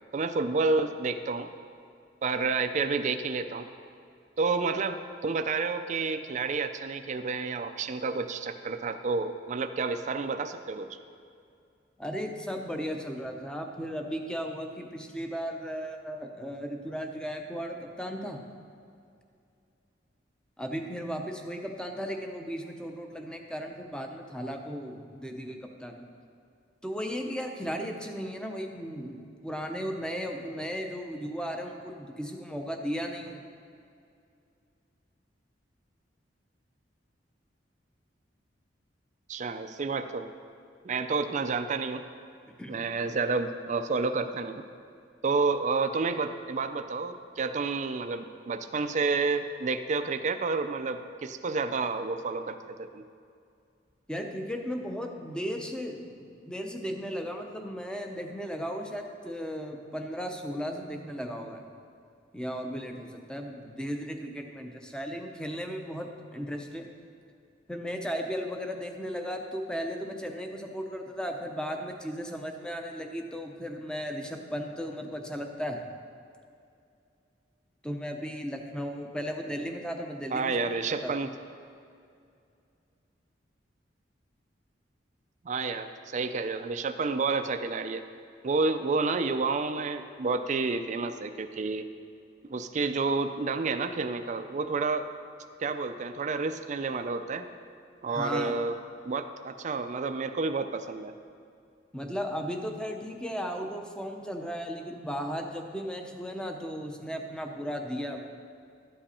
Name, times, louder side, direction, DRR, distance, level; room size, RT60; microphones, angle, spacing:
voice 1, 0.1-1.5 2.2-3.7 4.4-11.0 39.3-40.3 40.8-42.0 42.7-44.6 45.2-53.0 80.3-81.3 85.4-88.0 88.4-91.9 92.5-95.1 95.6-97.5 98.0-98.8 99.0-101.1, right 4 dB, 40° right, 8 dB, 0.4 m, -30 dB
voice 2, 12.0-18.4 20.6-26.1 26.8-33.4 42.6-42.9 54.1-61.6 62.3-66.9 67.7-75.8 77.8-80.6 81.0-81.1 98.1-98.5 101.9-108.2, equal, 5° left, 3 dB, 0.7 m, -36 dB
12.5 x 7.7 x 4.3 m, 2.4 s
head